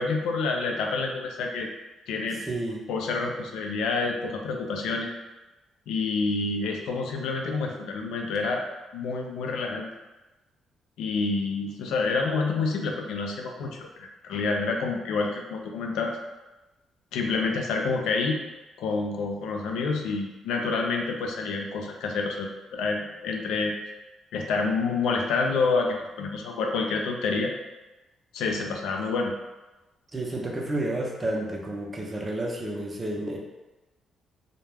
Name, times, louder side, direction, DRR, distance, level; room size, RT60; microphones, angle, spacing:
voice 1, 0.0-1.7 2.1-2.4 2.9-5.1 5.9-8.6 8.9-9.9 11.0-16.2 17.1-18.4 18.8-23.7 24.3-27.5 28.3-29.3, left 4 dB, 85° left, 1 dB, 0.4 m, -28 dB
voice 2, 2.5-2.8 30.1-33.4, right 1 dB, 25° right, -1 dB, 0.5 m, -30 dB
2.3 x 2.1 x 3.3 m, 1.1 s
cardioid pair, 90°, 0 cm